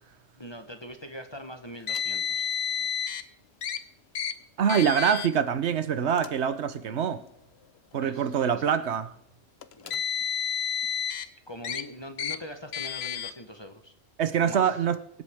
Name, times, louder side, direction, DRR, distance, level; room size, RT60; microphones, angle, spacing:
voice 1, 0.4-2.5 6.8-7.2 7.9-8.6 9.7-10.2 11.5-13.9 14.4-14.8, equal, 25° left, 0.9 m, -43 dB
Car, 1.9-3.2 3.6-3.8 4.1-4.3 4.7-5.3 6.1-6.3 7.2-7.3 9.6-11.3 11.6-11.8 12.2-12.4 12.7-13.3, left 8 dB, 65° left, 0.9 m, -30 dB
voice 2, 4.6-7.2 7.9-9.1 14.2-15.0, right 7 dB, 70° right, 1.0 m, -25 dB
24.0 x 8.1 x 3.5 m
omnidirectional pair, 1.2 m